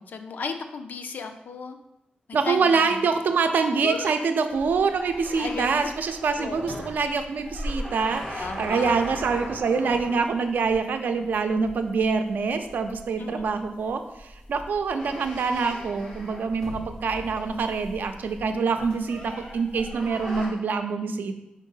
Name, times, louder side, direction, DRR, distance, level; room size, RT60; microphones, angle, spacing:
voice 1, 0.0-1.8 2.4-3.1 3.8-4.1 5.4-5.9 6.4-6.9 8.3-8.9 13.2-13.4, left 4 dB, 70° left, 7 dB, 0.5 m, -34 dB
voice 2, 2.3-21.4, right 5 dB, 85° right, 7 dB, 0.5 m, -25 dB
sound 1, 4.5-20.5, equal, 20° left, 2.1 m, -40 dB
5.2 x 3.6 x 5.5 m, 0.87 s
wide cardioid pair, 140°, 3 cm